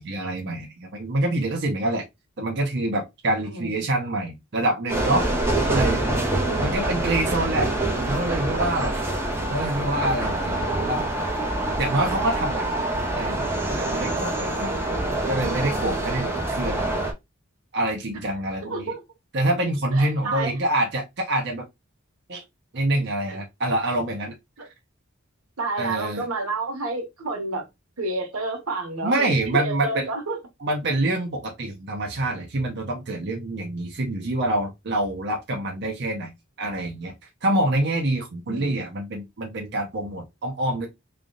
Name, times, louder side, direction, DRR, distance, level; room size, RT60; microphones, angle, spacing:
voice 1, 0.0-2.0 2.4-5.3 5.7-6.0 6.6-8.9 9.4-11.0 11.8-12.7 13.1-14.8 15.3-16.9 17.7-18.9 19.3-21.7 22.3-22.4 22.7-24.3 24.6-24.7 25.8-26.3 29.0-30.1 30.6-37.1 37.4-40.9, right 1 dB, 50° right, 0.7 m, -26 dB
sound 1, 4.9-17.1, right 1 dB, 10° right, 0.7 m, -25 dB
voice 2, 6.4-7.4 18.7-19.0 19.9-20.5 24.6-24.7 25.6-27.7 28.0-30.4 38.5-38.8, right 2 dB, 85° right, 1.2 m, -30 dB
3.3 x 2.4 x 3.8 m
head